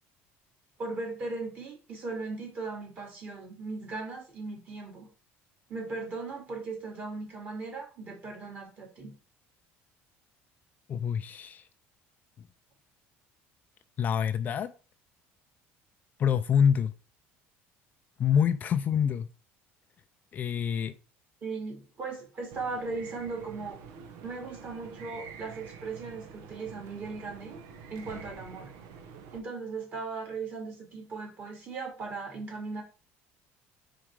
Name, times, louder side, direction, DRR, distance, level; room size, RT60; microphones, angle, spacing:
voice 1, 0.8-5.1 5.7-9.1 21.4-23.8 24.2-27.6 27.9-28.7 29.3-32.8, right 3 dB, 35° right, 2.5 m, -38 dB
voice 2, 10.9-11.7 14.0-14.7 16.2-16.9 18.2-19.3 20.3-20.9, left 8 dB, 35° left, 0.4 m, -26 dB
sound 1, 22.5-29.4, right 6 dB, 75° right, 0.9 m, -47 dB
5.0 x 4.3 x 4.7 m
cardioid pair, 150°, 5 cm